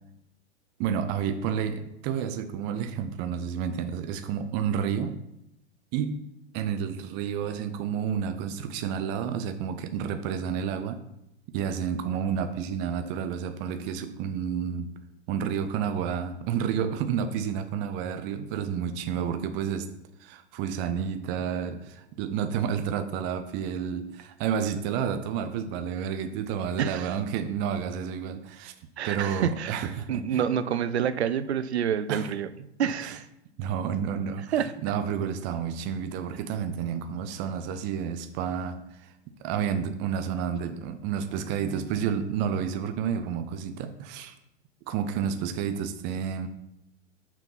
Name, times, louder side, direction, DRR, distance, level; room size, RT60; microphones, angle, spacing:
voice 1, 0.8-5.2 5.9-11.0 11.5-14.9 15.3-19.9 20.2-28.7 29.0-30.4 32.1-32.3 32.8-33.2 33.6-39.1 39.4-44.4 44.9-46.5, right 7 dB, 35° right, 9 dB, 0.5 m, -30 dB
voice 2, 26.8-27.1 29.0-32.5 32.8-33.2 34.5-34.7, right 8 dB, 75° right, 14 dB, 0.6 m, -28 dB
6.0 x 4.4 x 5.7 m, 0.83 s
figure-of-eight pair, 100°, 33 cm